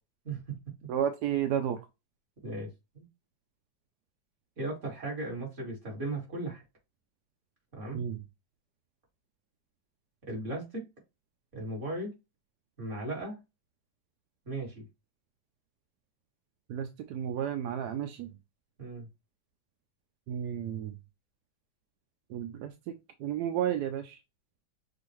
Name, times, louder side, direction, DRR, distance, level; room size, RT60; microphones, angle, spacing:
voice 1, 0.9-1.8 7.9-8.2 16.7-18.3 20.3-20.9 22.3-22.7 23.2-24.2, right 9 dB, 70° right, 7 dB, 1.0 m, -32 dB
voice 2, 4.6-6.6 7.7-8.0 10.3-10.8 11.5-12.1 12.8-13.4 14.5-14.8 18.8-19.1, right 2 dB, 40° right, -3 dB, 2.6 m, -36 dB
6.2 x 2.5 x 3.0 m, 0.24 s
omnidirectional pair, 2.1 m